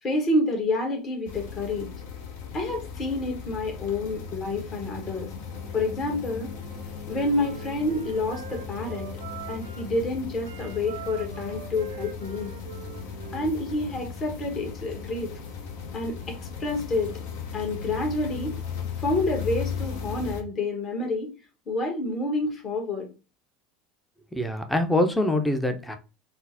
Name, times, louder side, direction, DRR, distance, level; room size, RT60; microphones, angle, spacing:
voice 1, 0.0-1.9 2.5-5.3 5.7-6.5 7.1-9.1 9.5-12.5 13.3-15.3 15.9-17.2 17.5-18.6 19.0-21.3 21.7-23.1, left 2 dB, 35° left, 2 dB, 1.1 m, -28 dB
sound 1, 1.2-20.4, left 6 dB, 65° left, 0.6 m, -37 dB
Wind instrument woodwind instrument, 6.5-9.9 10.4-14.0, right 9 dB, 80° right, 0.3 m, -44 dB
voice 2, 24.3-26.0, left 1 dB, 5° left, 7 dB, 0.5 m, -24 dB
3.8 x 2.0 x 2.6 m, 0.31 s
figure-of-eight pair, 75°, 0 cm